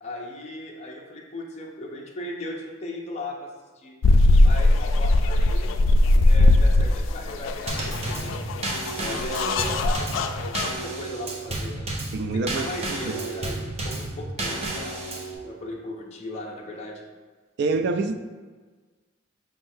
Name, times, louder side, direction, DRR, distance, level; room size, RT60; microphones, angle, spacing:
voice 1, 0.0-3.5 3.8-3.9 4.4-5.8 6.2-15.0 15.4-17.0, left 1 dB, 35° left, -2 dB, 0.6 m, -37 dB
sound 1, 4.0-10.7, left 2 dB, 80° left, 0.3 m, -19 dB
Drum kit / Snare drum / Bass drum, 7.7-15.3, right 2 dB, 35° right, 0.7 m, -31 dB
voice 2, 12.1-13.2 17.6-18.1, right 3 dB, 60° right, 7 dB, 0.3 m, -26 dB
5.3 x 3.7 x 2.6 m, 1.4 s
head